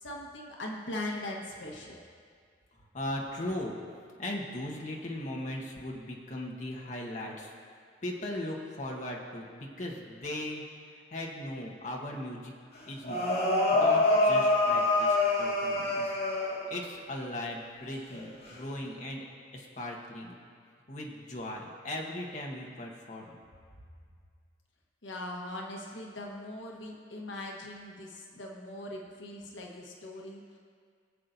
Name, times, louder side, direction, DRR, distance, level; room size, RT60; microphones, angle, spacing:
voice 1, 0.0-2.0 25.0-30.6, left 1 dB, 80° left, -1 dB, 1.3 m, -40 dB
voice 2, 2.8-3.8 4.2-7.5 8.0-10.6 10.9-12.5 12.9-13.2 13.7-16.1 16.4-19.3 19.5-20.4 20.9-23.4, left 1 dB, 40° left, -1 dB, 1.3 m, -38 dB
sound 1, 13.0-16.9 18.1-18.5, left 2 dB, 60° left, 2.0 m, -26 dB
22.0 x 7.5 x 2.7 m, 2.1 s
head